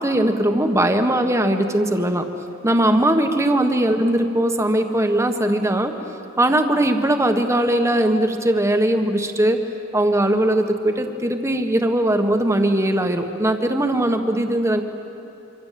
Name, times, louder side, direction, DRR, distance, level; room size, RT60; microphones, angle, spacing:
voice 1, 0.0-2.2 2.6-5.9 6.4-9.6 9.9-14.8, right 1 dB, 15° right, 5 dB, 1.5 m, -20 dB
25.5 x 25.0 x 7.7 m, 2.8 s
head